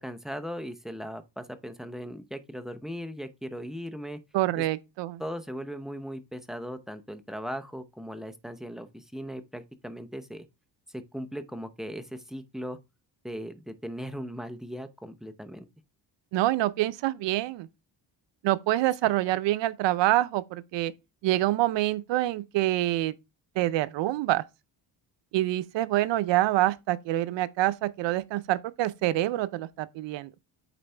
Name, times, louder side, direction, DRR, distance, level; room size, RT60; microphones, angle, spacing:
voice 1, 0.0-4.2 4.6-4.7 5.2-10.5 10.9-12.8 13.2-15.7 19.0-19.1, equal, ahead, 0.7 m, -38 dB
voice 2, 4.3-5.2 16.3-17.7 18.4-20.9 21.2-23.1 23.6-24.4 25.3-30.3, right 15 dB, 80° right, 0.7 m, -26 dB
9.1 x 4.1 x 3.4 m
cardioid pair, 120°, 43 cm